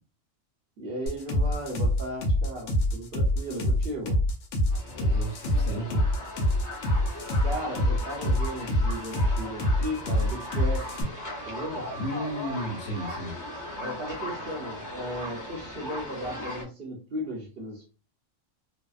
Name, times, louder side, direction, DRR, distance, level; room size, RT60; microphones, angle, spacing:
voice 1, 0.8-4.2 7.4-11.1 11.5-11.9 13.7-17.9, equal, 55° right, 0 dB, 0.8 m, -36 dB
sound 1, 1.1-11.0, left 1 dB, 85° left, 1.0 m, -25 dB
sound 2, 4.7-16.6, left 1 dB, 20° left, 0.6 m, -38 dB
voice 2, 4.8-6.0 11.9-13.4, equal, 65° left, 1 dB, 1.1 m, -34 dB
2.7 x 2.0 x 2.3 m, 0.35 s
omnidirectional pair, 1.3 m